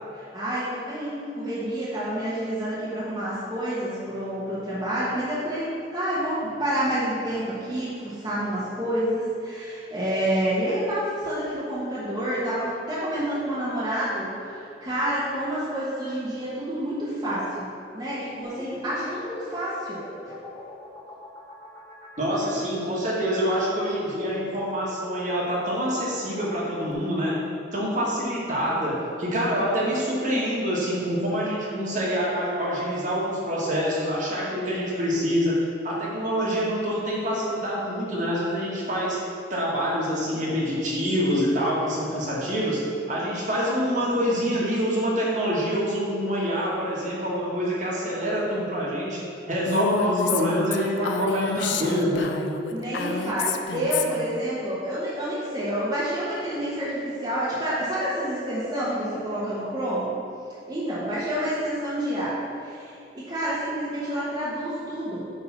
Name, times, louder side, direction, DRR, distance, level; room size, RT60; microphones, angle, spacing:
voice 1, 0.1-17.7 17.9-20.0 52.7-60.1 60.7-62.3 62.6-65.4, right 1 dB, 25° right, -10 dB, 1.2 m, -28 dB
sound 1, 18.4-26.9, equal, 20° left, 0.8 m, -43 dB
voice 2, 22.2-27.3 27.7-35.6 35.8-39.2 39.5-42.8 43.1-49.2 49.5-52.3, equal, 45° right, -5 dB, 1.7 m, -26 dB
Female speech woman speaking, 49.7-54.3, left 5 dB, 80° left, 0.5 m, -29 dB
8.3 x 3.8 x 5.9 m, 2.8 s
head